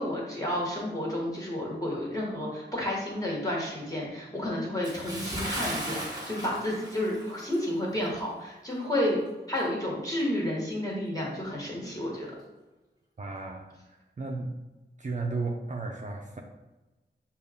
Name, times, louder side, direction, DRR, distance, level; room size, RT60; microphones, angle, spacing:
voice 1, 0.0-9.2 9.5-12.3, left 1 dB, 20° left, -4 dB, 1.3 m, -31 dB
Bathtub (filling or washing) / Splash splatter, 4.8-7.7 8.0-8.2 8.8-8.9, right 1 dB, 20° right, 1.1 m, -37 dB
voice 2, 13.2-13.8 14.2-14.6 15.0-16.4, right 3 dB, 40° right, 1 dB, 0.4 m, -34 dB
5.0 x 2.4 x 3.5 m, 1.1 s
wide cardioid pair, 85°, 19 cm